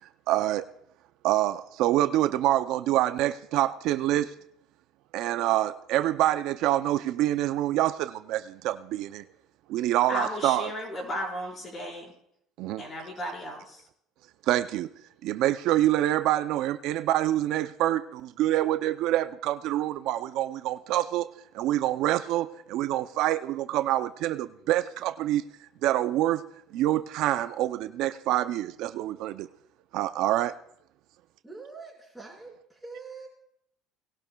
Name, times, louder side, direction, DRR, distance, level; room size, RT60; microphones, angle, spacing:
voice 1, 0.3-0.6 1.2-4.3 5.1-9.2 9.7-10.7 12.6-12.8 14.5-14.9 15.2-21.3 21.5-25.4 25.8-26.4 26.7-29.5 29.9-30.5, right 14 dB, 65° right, 11 dB, 0.5 m, -26 dB
voice 2, 10.1-12.1 12.8-13.8, equal, 35° left, 0 dB, 4.8 m, -34 dB
voice 3, 31.4-33.3, right 4 dB, 5° right, -3 dB, 4.4 m, -44 dB
19.5 x 12.0 x 2.3 m, 0.72 s
cardioid pair, 115°, 0 cm